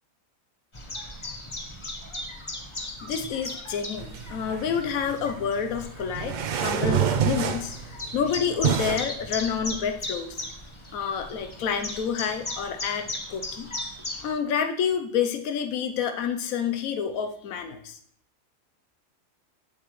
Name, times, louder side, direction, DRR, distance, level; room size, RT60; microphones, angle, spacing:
Chirp tweet, 0.7-14.3, left 2 dB, 25° left, 1.0 m, -37 dB
voice 1, 3.0-10.4 10.9-13.7 14.2-18.0, left 7 dB, 85° left, 6 dB, 1.2 m, -29 dB
sound 1, 4.0-9.1, right 8 dB, 80° right, 0.4 m, -28 dB
9.2 x 7.9 x 3.1 m, 0.63 s
omnidirectional pair, 1.4 m